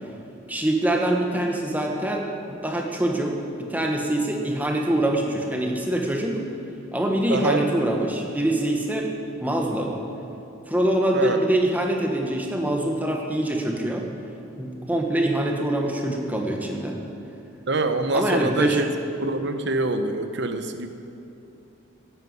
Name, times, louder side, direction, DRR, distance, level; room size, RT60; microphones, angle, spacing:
voice 1, 0.5-6.4 6.9-9.1 9.4-9.9 10.7-14.1 14.6-17.0 18.1-18.8, right 1 dB, 10° right, 1 dB, 1.3 m, -24 dB
voice 2, 7.3-7.6 11.1-11.4 17.7-18.8 19.2-20.9, right 2 dB, 60° right, 8 dB, 0.9 m, -24 dB
11.0 x 9.4 x 7.9 m, 2.8 s
head